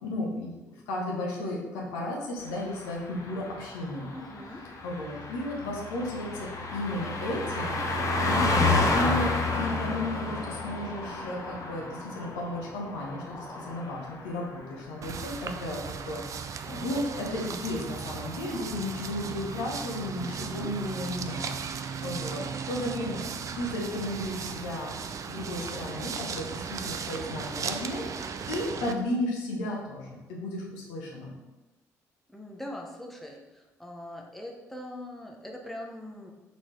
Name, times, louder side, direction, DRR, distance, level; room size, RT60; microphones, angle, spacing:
voice 1, 0.0-0.5 0.9-4.1 4.8-7.8 8.2-16.4 16.6-25.0 25.3-31.3, left 1 dB, 70° left, -2 dB, 0.8 m, -34 dB
Car passing by, 2.5-14.4 14.7-15.0, left 3 dB, 40° left, 0.8 m, -31 dB
voice 2, 4.1-4.6 20.2-20.7 32.3-36.3, left 1 dB, ahead, 0 dB, 0.8 m, -42 dB
sound 1, 15.0-28.9, right 6 dB, 40° right, 0.3 m, -36 dB
4.0 x 3.9 x 3.1 m, 1.1 s
figure-of-eight pair, 45°, 9 cm